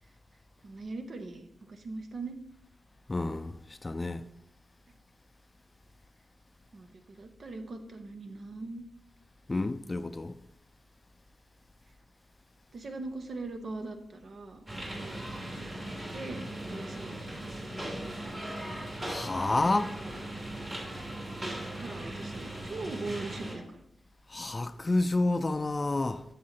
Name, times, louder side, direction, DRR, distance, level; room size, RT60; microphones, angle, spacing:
voice 1, 0.6-2.4 6.7-8.8 12.7-14.6 15.0-17.2 17.6-18.6 21.7-23.9, right 3 dB, 60° right, 0.9 m, -41 dB
voice 2, 3.1-4.2 9.5-10.4 19.0-20.0 24.3-26.2, left 2 dB, 30° left, 0.4 m, -29 dB
sound 1, 14.7-23.5, right 1 dB, 30° right, 3.0 m, -38 dB
7.5 x 7.4 x 2.9 m
cardioid pair, 60°, 0 cm